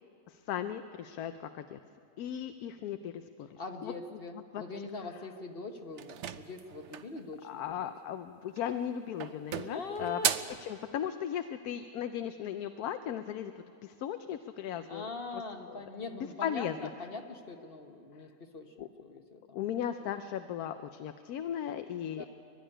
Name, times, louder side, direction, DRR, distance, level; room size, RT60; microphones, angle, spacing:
voice 1, 0.3-1.8 2.2-3.1 3.4-3.9 4.5-4.6 7.4-10.2 10.6-15.1 15.3-15.4 15.7-15.8 16.4-16.8 18.8-18.9 19.5-22.3, left 9 dB, 80° left, 9 dB, 1.1 m, -37 dB
voice 2, 3.6-7.9 9.7-10.4 14.9-19.7 20.0-20.1 22.0-22.3, left 3 dB, 40° left, 5 dB, 1.3 m, -42 dB
sound 1, 6.0-7.2 8.5-8.9 9.2-10.6, right 9 dB, 60° right, 0.9 m, -35 dB
24.0 x 12.5 x 10.0 m, 2.5 s
omnidirectional pair, 1.6 m